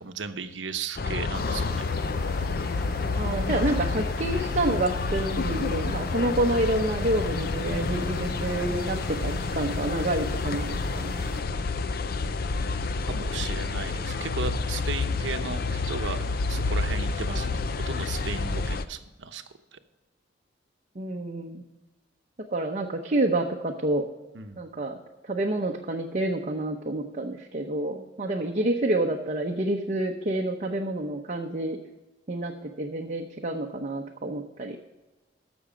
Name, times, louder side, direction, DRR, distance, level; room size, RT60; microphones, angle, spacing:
voice 1, 0.0-1.8 13.1-16.2 16.5-19.4 19.7-19.8 24.3-24.6, right 5 dB, 80° right, 9 dB, 0.9 m, -35 dB
sound 1, 1.0-18.9, left 3 dB, 55° left, 0.5 m, -29 dB
sound 2, 1.3-11.4, equal, ahead, 3.8 m, -45 dB
voice 2, 3.2-11.2 21.0-21.6 22.5-24.1 24.6-25.0 25.2-31.8 32.3-34.8, right 1 dB, 40° right, 1 dB, 0.8 m, -28 dB
14.5 x 6.2 x 5.0 m, 1.1 s
head